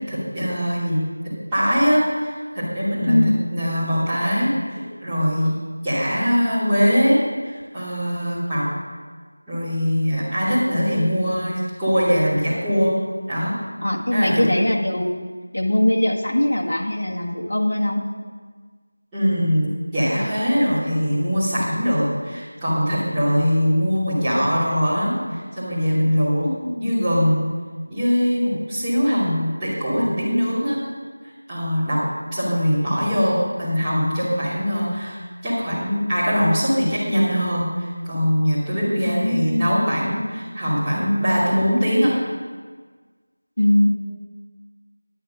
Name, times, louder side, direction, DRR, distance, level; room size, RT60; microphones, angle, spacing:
voice 1, 0.1-1.0 1.5-5.5 5.8-8.7 9.5-12.9 13.3-13.5 14.1-14.5 19.1-26.5 26.8-27.4 27.9-30.8 31.5-32.0 32.3-35.2 35.4-42.1, equal, 5° right, -16 dB, 2.9 m, -21 dB
voice 2, 3.1-3.4 13.8-15.2 15.5-18.0 26.4-26.9 39.0-39.8 43.6-43.9, left 1 dB, 50° left, -1 dB, 1.7 m, -21 dB
10.5 x 9.3 x 5.4 m, 1.5 s
figure-of-eight pair, 175°, 0 cm